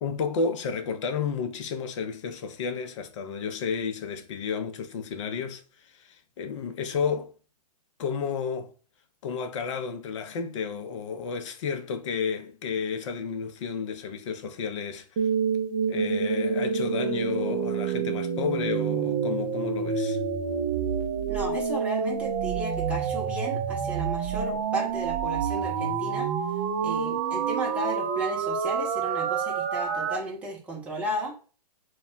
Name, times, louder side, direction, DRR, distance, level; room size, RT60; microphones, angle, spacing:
voice 1, 0.0-7.3 8.0-8.7 9.2-15.2 15.9-20.2, left 5 dB, 45° left, 0.6 m, -32 dB
sound 1, 15.2-30.2, right 6 dB, 30° right, 0.4 m, -28 dB
voice 2, 21.3-26.3 26.8-31.3, right 1 dB, 5° right, 0.8 m, -34 dB
2.2 x 2.0 x 3.7 m
figure-of-eight pair, 125°, 21 cm